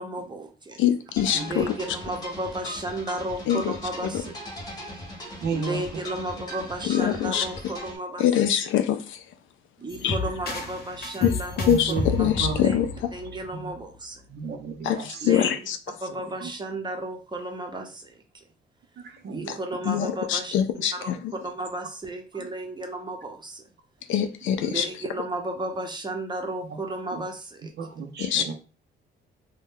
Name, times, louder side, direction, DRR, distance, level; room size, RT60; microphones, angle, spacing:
voice 1, 0.0-0.8 1.3-4.3 5.2-8.2 9.8-11.8 12.6-12.8 13.1-14.2 14.9-15.5 16.0-18.2 19.3-20.5 20.9-21.1 21.4-23.6 24.6-27.7, right 1 dB, 20° right, 0.8 m, -34 dB
voice 2, 0.8-1.7 3.5-3.7 6.9-7.4 8.2-9.2 10.0-10.2 11.2-11.3 11.7-12.9 14.8-15.8 19.5-19.6 19.9-21.2 24.1-24.9 28.2-28.5, left 10 dB, 75° left, 0.4 m, -24 dB
sound 1, 1.2-8.0, left 1 dB, 20° left, 1.0 m, -39 dB
voice 3, 5.4-5.8 9.8-9.9 11.7-12.6 13.5-13.7 14.3-15.6 16.1-16.5 19.0-19.6 19.9-20.0 22.3-22.5 26.7-26.8 27.1-27.2 27.8-28.5, right 5 dB, 60° right, 0.6 m, -34 dB
sound 2, 9.9-13.8, left 3 dB, 55° left, 0.9 m, -31 dB
2.7 x 2.2 x 3.6 m
cardioid pair, 90°, 20 cm